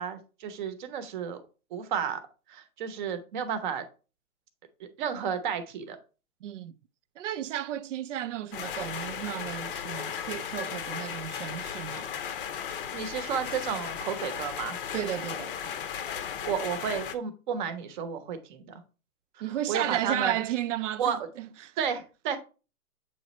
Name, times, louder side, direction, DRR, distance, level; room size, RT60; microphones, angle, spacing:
voice 1, 0.0-1.4 1.7-2.2 2.5-3.8 4.8-6.0 12.9-14.8 16.1-18.8 19.7-20.4 21.0-21.2 21.8-22.4, right 7 dB, 35° right, 0.8 m, -32 dB
voice 2, 6.4-6.7 7.2-12.3 14.9-15.6 19.4-21.7, right 12 dB, 60° right, 0.5 m, -33 dB
sound 1, 8.5-17.2, left 8 dB, 40° left, 0.7 m, -36 dB
7.6 x 3.1 x 4.1 m
hypercardioid pair, 140°, 43 cm